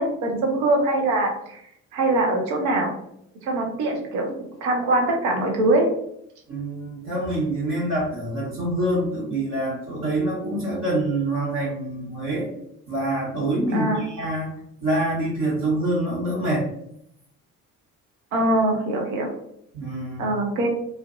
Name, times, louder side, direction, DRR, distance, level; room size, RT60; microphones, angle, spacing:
voice 1, 0.0-1.6 1.9-2.9 3.4-4.3 4.6-5.9 13.7-14.0 18.3-19.3 20.2-20.7, right 2 dB, 75° right, 2 dB, 0.7 m, -22 dB
voice 2, 6.5-12.5 12.9-16.7 19.7-20.2, right 1 dB, 50° right, -6 dB, 1.1 m, -26 dB
2.5 x 2.1 x 2.4 m, 0.74 s
hypercardioid pair, 50°, 42 cm